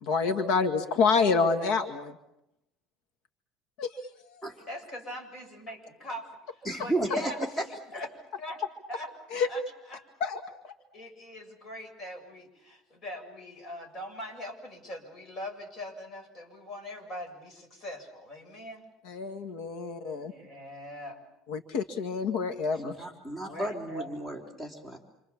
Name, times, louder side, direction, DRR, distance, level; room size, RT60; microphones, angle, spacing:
voice 1, 0.0-2.2 3.8-3.9 9.3-9.5 10.2-10.7 19.1-20.3 21.5-22.9, left 5 dB, 80° left, 6 dB, 2.0 m, -27 dB
voice 2, 4.7-8.1 8.4-8.6 8.9-9.1 9.5-9.6 9.9-10.0 10.9-18.9 20.2-21.2 23.5-24.1, left 1 dB, 35° left, 4 dB, 7.4 m, -42 dB
voice 3, 6.7-7.3 22.7-25.0, right 2 dB, 15° left, 1 dB, 3.9 m, -33 dB
28.5 x 27.0 x 7.3 m, 0.86 s
cardioid pair, 150°, 0 cm